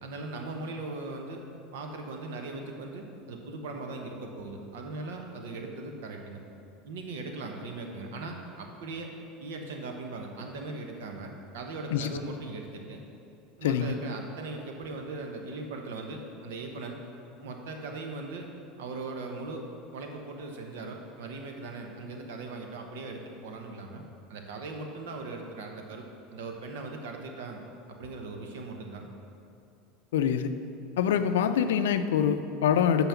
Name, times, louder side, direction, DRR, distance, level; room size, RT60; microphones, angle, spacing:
voice 1, 0.0-1.4 1.7-6.4 6.8-9.1 9.4-13.0 13.6-17.0 17.4-18.5 18.8-19.7 19.9-24.0 24.3-27.6 27.9-29.1, right 3 dB, 80° right, 3 dB, 0.9 m, -39 dB
voice 2, 13.6-14.0 30.1-30.5 31.0-33.1, left 8 dB, 85° left, 10 dB, 0.4 m, -25 dB
5.9 x 5.8 x 6.9 m, 2.6 s
supercardioid pair, 105°, 0 cm